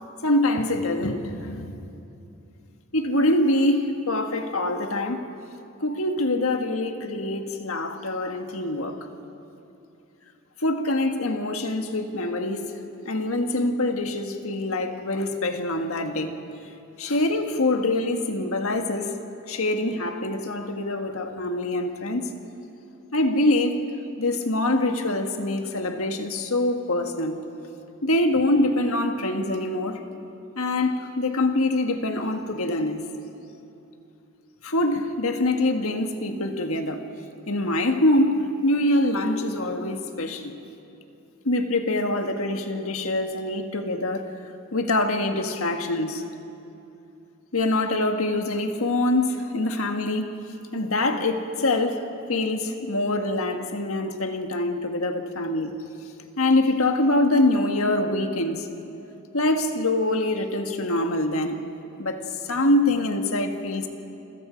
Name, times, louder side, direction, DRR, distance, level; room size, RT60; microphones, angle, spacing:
voice 1, 0.2-1.7 2.9-5.3 5.8-9.0 10.6-16.3 17.0-19.2 19.5-22.3 23.1-23.8 24.2-27.4 28.0-30.1 30.6-33.0 34.6-37.0 37.5-40.6 41.4-44.3 44.7-46.2 47.5-50.4 50.7-55.8 56.4-58.7 59.3-61.6 62.0-63.9, left 2 dB, 75° left, 1.7 m, -24 dB
29.0 x 23.5 x 5.2 m
head